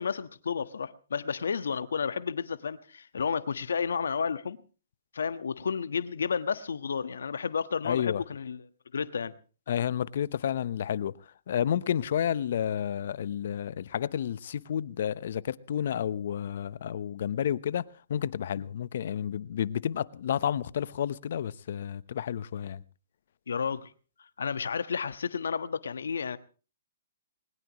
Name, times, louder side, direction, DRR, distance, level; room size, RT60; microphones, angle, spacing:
voice 1, 0.0-4.6 5.1-8.6 8.9-9.3 23.5-23.9 24.4-26.4, left 6 dB, 85° left, 1.4 m, -31 dB
voice 2, 7.8-8.2 9.7-11.1 11.5-17.8 18.1-22.8, left 9 dB, 60° left, 0.9 m, -30 dB
21.0 x 20.5 x 3.1 m
hypercardioid pair, 150°, 0 cm